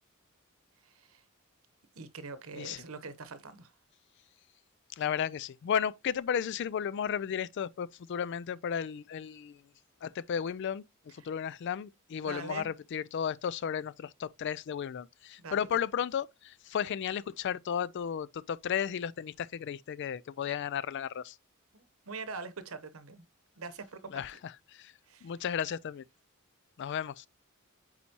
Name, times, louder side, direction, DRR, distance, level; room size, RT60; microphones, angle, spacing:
voice 1, 0.8-1.2 1.9-3.7 11.2-11.3 12.2-12.7 15.4-15.7 21.7-23.2 23.6-24.2 25.1-25.3, right 4 dB, 75° right, 0.9 m, -43 dB
voice 2, 4.9-9.6 10.0-21.4 24.1-24.9 25.2-26.0 26.8-27.3, left 8 dB, 55° left, 0.3 m, -34 dB
8.8 x 4.2 x 2.8 m
head